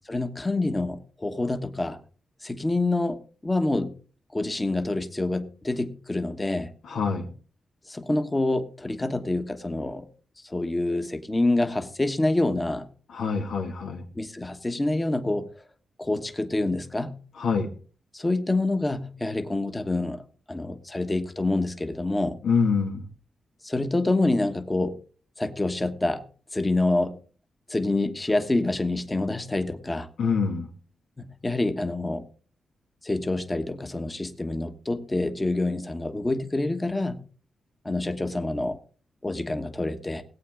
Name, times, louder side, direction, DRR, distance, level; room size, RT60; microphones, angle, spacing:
voice 1, 0.1-2.0 2.4-3.2 3.4-4.0 4.3-6.7 7.9-10.1 10.4-12.9 14.1-15.5 16.0-17.2 18.1-20.2 20.5-22.4 23.6-25.0 25.4-26.2 26.5-27.2 27.7-30.1 31.2-32.3 33.0-37.2 37.8-38.8 39.2-40.2, left 2 dB, 15° left, 1.2 m, -27 dB
voice 2, 6.8-7.3 13.1-14.0 17.4-17.7 22.4-23.1 30.2-30.7, left 5 dB, 90° left, 2.2 m, -25 dB
18.5 x 8.6 x 3.8 m
wide cardioid pair, 115°, 0 cm